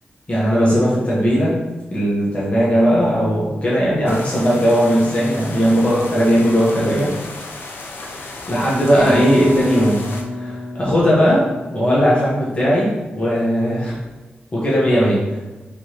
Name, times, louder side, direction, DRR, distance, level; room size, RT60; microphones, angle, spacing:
voice 1, 0.3-1.6 1.9-7.1 8.1-10.0 10.3-14.0 14.5-15.2, equal, 35° left, -7 dB, 1.2 m, -17 dB
sound 1, 4.1-10.2, left 3 dB, 85° left, 0.6 m, -34 dB
sound 2, 9.0-12.8, left 1 dB, 20° right, 1.2 m, -27 dB
4.8 x 3.6 x 2.9 m, 1.1 s
wide cardioid pair, 95°, 4 cm